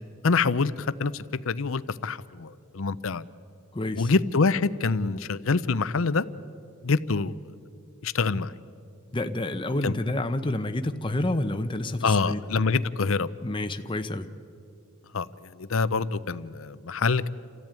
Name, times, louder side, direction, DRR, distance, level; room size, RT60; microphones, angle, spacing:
voice 1, 0.2-3.2 4.0-6.2 6.8-7.3 8.0-8.6 9.8-9.9 12.0-13.3 15.1-17.3, left 4 dB, 70° left, 15 dB, 0.7 m, -26 dB
voice 2, 3.7-4.1 9.1-12.4 13.4-14.3, left 1 dB, 25° left, 7 dB, 0.8 m, -29 dB
29.0 x 14.0 x 9.1 m, 2.5 s
head